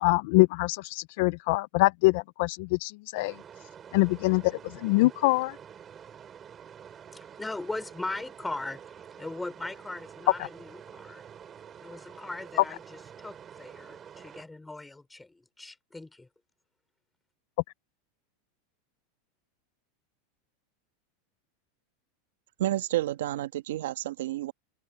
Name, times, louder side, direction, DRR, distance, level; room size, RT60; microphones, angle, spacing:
voice 1, 0.0-3.3 3.9-4.5 4.8-5.5, left 22 dB, 45° left, 0.3 m, -24 dB
sound 1, 3.1-14.4, right 8 dB, 15° right, 4.8 m, -48 dB
voice 2, 7.1-8.8 9.2-11.2 11.8-16.3, left 2 dB, 5° left, 3.8 m, -39 dB
voice 3, 22.6-24.5, right 14 dB, 80° right, 1.4 m, -30 dB
open air
supercardioid pair, 180°, 0 cm